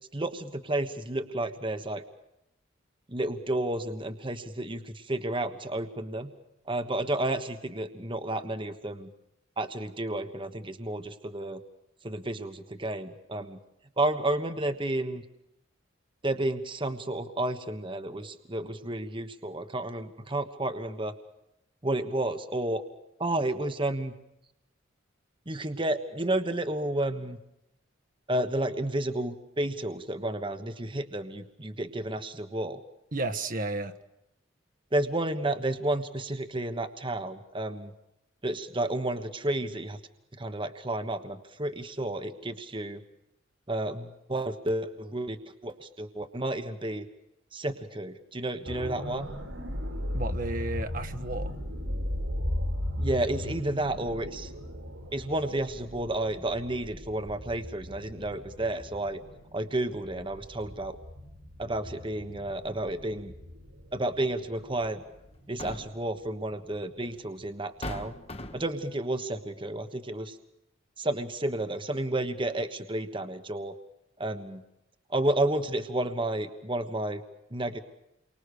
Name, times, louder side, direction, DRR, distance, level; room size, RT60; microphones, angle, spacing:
voice 1, 0.1-2.0 3.1-6.3 6.7-9.1 9.6-11.6 12.0-13.6 14.0-15.2 16.2-21.1 21.8-22.8 23.2-24.1 25.5-27.4 28.3-32.8 34.9-37.9 38.4-40.0 40.3-43.0 43.7-45.4 45.6-47.1 47.5-49.3 53.0-54.5 55.1-59.2 59.5-61.0 61.6-63.3 63.9-65.0 65.5-68.1 68.5-70.4 71.0-73.7 74.2-74.6 75.1-77.2 77.5-77.8, right 1 dB, 25° right, 9 dB, 1.3 m, -31 dB
voice 2, 33.1-34.0 50.1-51.6, right 2 dB, 45° right, 7 dB, 1.4 m, -33 dB
sound 1, 48.6-66.5 66.9-67.1, left 1 dB, 80° right, 5.6 m, -37 dB
sound 2, 64.2-64.3 65.3-66.1 67.1-67.2 67.8-68.8, left 1 dB, 30° left, 1.4 m, -39 dB
30.0 x 24.5 x 6.6 m, 0.85 s
head